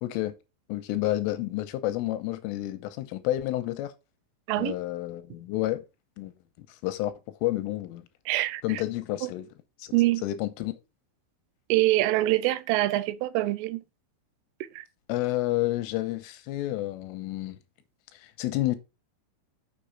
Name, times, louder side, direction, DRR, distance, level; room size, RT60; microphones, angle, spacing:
voice 1, 0.0-0.3 0.7-3.9 4.6-5.8 6.2-6.3 6.6-7.1 7.4-8.0 8.6-9.5 9.8-9.9 10.2-10.7 15.1-17.6 18.1-18.8, left 15 dB, 90° left, 3.5 m, -30 dB
voice 2, 8.3-8.6 9.2-9.3 9.9-10.2 11.7-13.8 14.8-14.9, right 17 dB, 85° right, 3.1 m, -24 dB
7.0 x 6.9 x 4.9 m
omnidirectional pair, 5.7 m